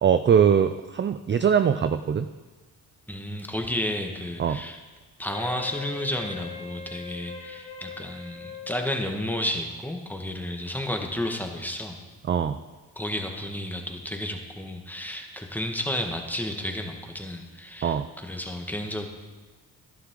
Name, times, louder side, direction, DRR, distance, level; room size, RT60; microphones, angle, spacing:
voice 1, 0.0-2.3 4.4-4.6 12.3-12.6 17.8-18.1, right 7 dB, 30° right, 10 dB, 0.4 m, -22 dB
voice 2, 3.1-4.8 5.2-12.0 12.9-19.1, left 1 dB, 5° left, 3 dB, 1.6 m, -32 dB
Wind instrument woodwind instrument, 5.3-9.6, left 7 dB, 50° left, 3.0 m, -42 dB
11.5 x 10.0 x 3.8 m, 1.3 s
supercardioid pair, 55°, 40 cm